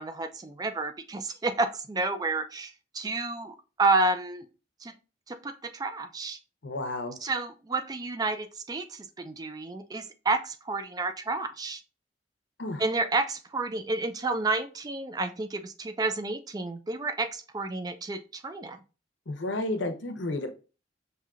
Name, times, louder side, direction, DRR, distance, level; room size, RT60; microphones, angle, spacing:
voice 1, 0.0-4.5 4.8-4.9 5.3-6.4 7.2-11.8 12.8-18.8, right 3 dB, 20° right, 9 dB, 0.3 m, -30 dB
voice 2, 6.6-7.1 12.6-12.8 19.3-20.5, left 2 dB, 85° left, 7 dB, 0.7 m, -32 dB
5.6 x 2.7 x 2.4 m, 0.33 s
head